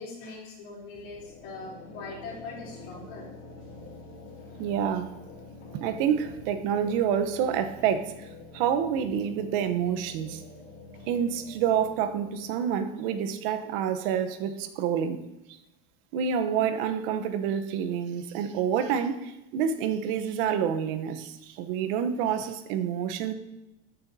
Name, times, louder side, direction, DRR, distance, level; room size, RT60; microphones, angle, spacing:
voice 1, 0.0-3.3, left 3 dB, 70° left, -4 dB, 3.4 m, -41 dB
sound 1, 0.9-14.6, left 2 dB, 40° left, 2.5 m, -47 dB
voice 2, 4.6-5.1 5.7-8.3 8.5-10.4 11.1-15.2 16.1-23.3, right 8 dB, 65° right, 9 dB, 0.9 m, -28 dB
13.5 x 6.9 x 2.7 m, 0.96 s
supercardioid pair, 130°, 30 cm